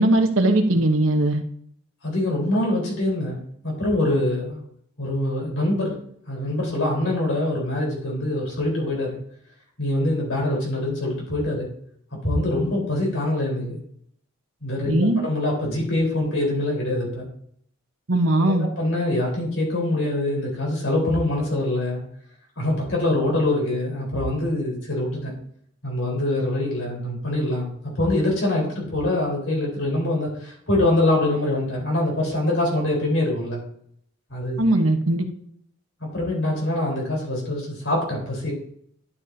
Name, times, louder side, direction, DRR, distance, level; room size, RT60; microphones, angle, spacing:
voice 1, 0.0-1.4 14.9-15.2 18.1-18.7 34.6-35.3, right 1 dB, 80° right, 5 dB, 1.2 m, -19 dB
voice 2, 2.0-4.6 5.0-5.9 6.3-9.2 9.8-11.7 12.2-13.8 14.6-17.3 18.4-22.0 22.6-25.3 25.8-33.6 34.3-34.6 36.0-38.5, left 1 dB, 70° left, -3 dB, 4.3 m, -24 dB
12.0 x 7.0 x 2.8 m, 0.65 s
head